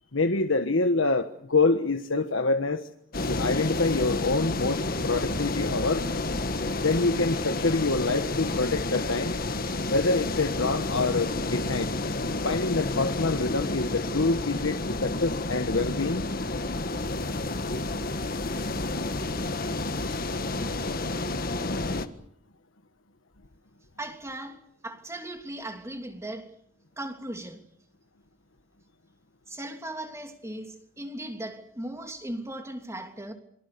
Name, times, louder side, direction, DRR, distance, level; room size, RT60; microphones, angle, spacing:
voice 1, 0.1-2.9 3.2-6.1 6.8-9.4 9.9-11.9 12.4-16.2, left 3 dB, 80° left, 1.4 m, -26 dB
sound 1, 3.1-22.1, left 2 dB, 50° left, 1.6 m, -30 dB
voice 2, 24.0-26.5 27.0-27.6 29.5-33.3, right 1 dB, 15° right, 3.1 m, -38 dB
28.0 x 24.0 x 6.9 m
head